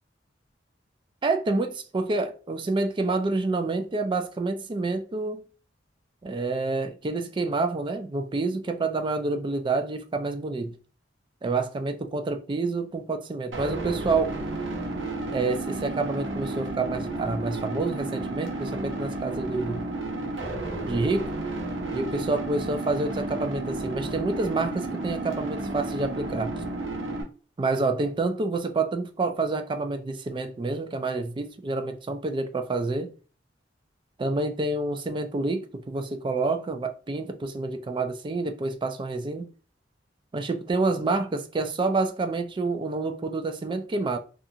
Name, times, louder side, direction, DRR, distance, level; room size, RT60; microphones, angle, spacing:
voice 1, 1.2-5.4 6.2-10.7 11.4-14.4 15.3-19.8 20.9-21.3 21.9-26.5 27.6-33.1 34.2-39.5 40.3-44.2, right 3 dB, 25° right, 0.3 m, -28 dB
sound 1, 13.5-27.2, right 2 dB, 85° right, 0.8 m, -32 dB
2.4 x 2.4 x 2.8 m
head